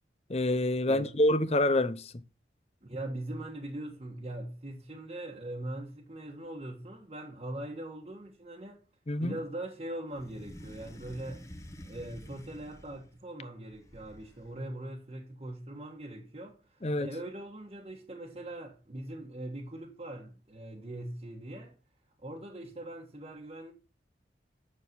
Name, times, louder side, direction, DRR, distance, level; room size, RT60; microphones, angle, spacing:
voice 1, 0.3-2.2 9.1-9.4 16.8-17.1, left 1 dB, 35° left, 0.7 m, -27 dB
voice 2, 2.8-8.8 9.2-11.5 11.8-21.7 22.2-23.7, right 1 dB, 35° right, 1.4 m, -41 dB
sound 1, 10.1-13.2 13.7-14.6, equal, 15° left, 1.2 m, -49 dB
9.7 x 6.7 x 6.1 m
head